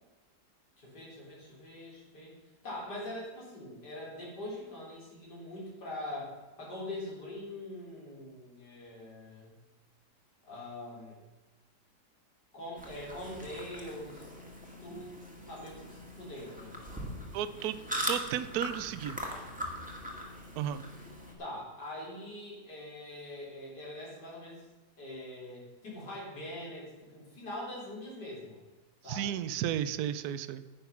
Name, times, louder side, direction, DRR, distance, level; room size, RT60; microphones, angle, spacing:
voice 1, 0.8-2.3 2.6-9.5 10.4-11.2 12.5-14.4 14.8-16.7 21.4-24.6 25.0-28.6 29.0-29.4, left 1 dB, 80° left, -4 dB, 4.7 m, -43 dB
sound 1, 12.8-21.3, equal, 5° right, 1.9 m, -41 dB
voice 2, 17.3-17.8 18.1-19.2 20.6-20.8 29.1-30.6, right 11 dB, 70° right, 13 dB, 1.1 m, -33 dB
10.5 x 9.4 x 5.9 m, 1.2 s
omnidirectional pair, 1.8 m